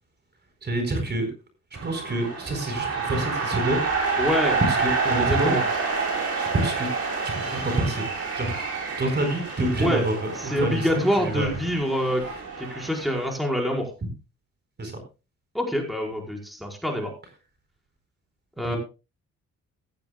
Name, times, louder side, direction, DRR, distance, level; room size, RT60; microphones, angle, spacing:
voice 1, 0.6-1.3 1.8-3.9 4.6-5.6 6.4-6.9 7.2-8.0 8.3-8.5 9.0-11.5 14.8-14.9 18.6-18.8, right 1 dB, 35° right, 6 dB, 4.4 m, -27 dB
sound 1, 1.7-13.3, right 4 dB, 55° right, 7.1 m, -28 dB
voice 2, 4.2-4.6 5.2-5.6 9.8-10.0 10.4-12.2 12.6-13.9 15.5-17.1 18.6-18.8, equal, ahead, 0 dB, 5.0 m, -26 dB
16.5 x 13.5 x 2.3 m, 0.30 s
cardioid pair, 90°, 30 cm